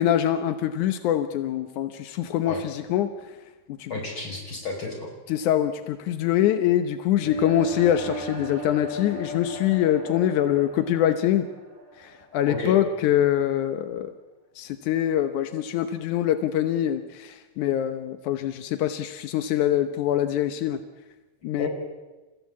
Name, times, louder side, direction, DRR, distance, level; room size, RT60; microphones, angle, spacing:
voice 1, 0.0-3.1 3.7-3.9 5.3-11.5 12.0-14.1 14.6-20.8 21.4-21.7, left 11 dB, 90° left, 9 dB, 2.4 m, -24 dB
voice 2, 3.9-5.1 12.5-12.8 21.6-21.7, left 3 dB, 40° left, 1 dB, 6.2 m, -31 dB
sound 1, 7.2-13.1, right 1 dB, 15° right, 4.4 m, -37 dB
29.0 x 16.0 x 8.4 m, 1.2 s
omnidirectional pair, 3.4 m